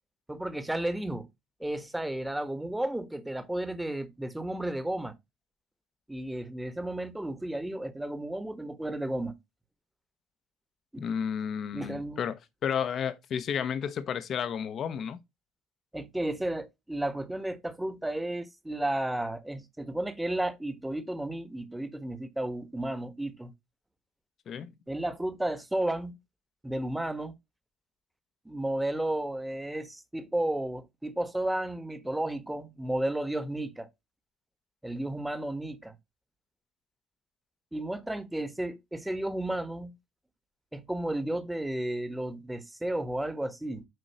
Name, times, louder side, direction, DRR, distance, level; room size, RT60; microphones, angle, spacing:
voice 1, 0.3-1.3 1.6-5.1 6.1-9.3 10.9-11.0 11.7-12.2 15.9-23.5 24.9-26.2 26.6-27.3 28.4-33.9 34.8-35.9 37.7-39.9 40.7-43.9, right 1 dB, 10° right, 1.3 m, -33 dB
voice 2, 11.0-15.2 24.5-24.7, left 8 dB, 50° left, 1.0 m, -32 dB
7.9 x 5.0 x 2.9 m
figure-of-eight pair, 50°, 0 cm